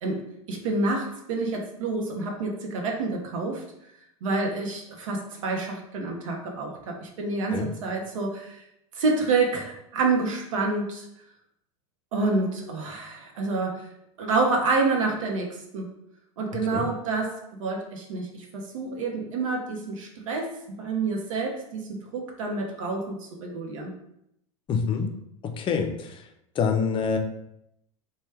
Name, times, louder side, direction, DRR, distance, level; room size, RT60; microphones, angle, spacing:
voice 1, 0.0-3.6 4.2-8.6 8.9-11.1 12.1-13.9 14.2-15.9 16.4-23.9, right 3 dB, 70° right, 1 dB, 0.7 m, -28 dB
voice 2, 16.5-16.9 24.7-25.1 25.4-26.2 26.6-27.2, left 5 dB, 30° left, 4 dB, 0.5 m, -26 dB
3.2 x 2.2 x 3.2 m, 0.78 s
hypercardioid pair, 90°, 17 cm